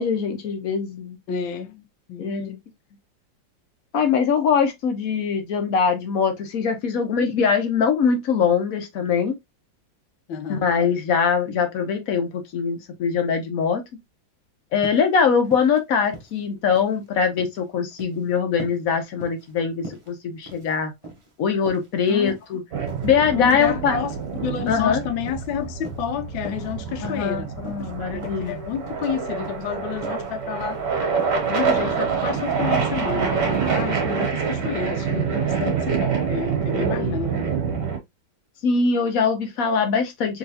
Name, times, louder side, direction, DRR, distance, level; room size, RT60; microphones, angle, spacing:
voice 1, 0.0-1.2 2.2-2.5 3.9-9.3 10.5-13.8 14.7-20.9 21.4-22.6 23.0-24.0 24.7-25.0 27.0-28.6 37.0-37.2 38.6-40.4, left 6 dB, 60° left, 1.0 m, -22 dB
voice 2, 1.3-2.6 10.3-10.7 22.1-22.4 23.3-24.1 24.4-30.8 31.5-37.5, left 8 dB, 85° left, 1.4 m, -30 dB
sound 1, 14.8-15.1 15.4-15.8 16.1-17.0 17.2-17.6 17.9-18.2 18.6-18.8 19.2-19.5 19.8-20.1 20.4-20.7 21.0-21.3 21.7-22.5 22.9-23.1 23.5-23.7 24.1-24.3 24.6-24.9 25.2-25.5 25.8-26.1 26.4-26.7 27.0-27.3 27.6-27.8 28.2-28.5 28.9-29.1 29.4-29.6 30.0-30.3 30.6-30.8 31.1-31.5 31.8-32.0 32.4-32.6 33.0-33.2 33.5-33.8 34.1-34.3, right 1 dB, 40° right, 0.4 m, -40 dB
sound 2, 22.7-38.0, right 6 dB, 65° right, 1.8 m, -26 dB
3.6 x 3.1 x 2.7 m
omnidirectional pair, 2.1 m